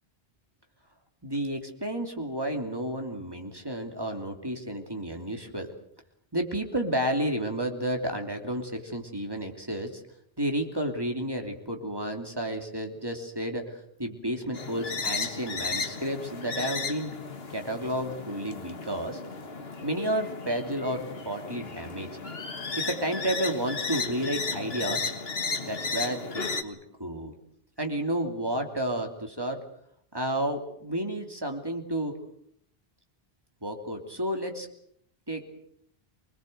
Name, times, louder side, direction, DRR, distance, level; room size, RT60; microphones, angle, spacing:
voice 1, 1.2-5.7 6.3-10.0 10.4-17.1 17.5-19.2 19.8-22.2 22.8-25.1 25.7-27.3 27.8-29.6 30.1-32.1 33.6-34.7 35.3-35.4, right 1 dB, 20° right, 3 dB, 3.1 m, -31 dB
sound 1, 14.5-26.6, left 4 dB, 70° left, 1.9 m, -34 dB
25.5 x 20.5 x 8.0 m, 0.70 s
omnidirectional pair, 1.1 m